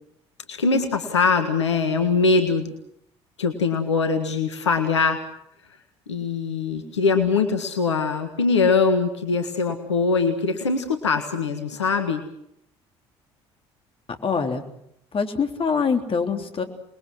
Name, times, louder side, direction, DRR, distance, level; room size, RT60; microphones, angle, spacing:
voice 1, 0.5-2.7 3.4-5.2 6.1-12.2, left 4 dB, 90° left, 6 dB, 1.7 m, -22 dB
voice 2, 14.2-14.6 15.1-16.6, left 5 dB, 40° left, 5 dB, 3.4 m, -24 dB
27.5 x 21.5 x 6.3 m, 0.74 s
hypercardioid pair, 55°, 14 cm